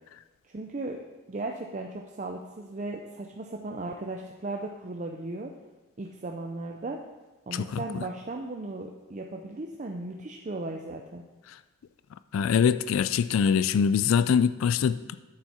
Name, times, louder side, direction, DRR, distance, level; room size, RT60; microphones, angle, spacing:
voice 1, 0.5-1.0 1.3-5.5 6.0-7.0 7.5-11.2, right 2 dB, 35° right, 2 dB, 0.5 m, -36 dB
voice 2, 7.5-7.8 12.3-15.2, left 7 dB, 80° left, 14 dB, 0.3 m, -23 dB
9.5 x 7.1 x 4.3 m, 1.1 s
head